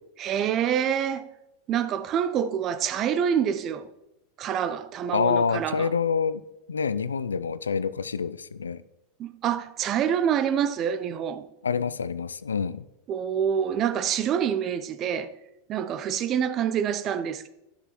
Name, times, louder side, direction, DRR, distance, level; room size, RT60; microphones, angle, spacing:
voice 1, 0.2-1.3 1.7-3.9 4.4-5.9 9.2-11.4 13.1-15.3 15.7-17.5, right 8 dB, 40° right, 0.6 m, -26 dB
voice 2, 5.1-6.4 6.7-8.8 11.6-12.9, left 6 dB, 90° left, 0.3 m, -27 dB
11.0 x 6.9 x 3.0 m
hypercardioid pair, 95°, 0 cm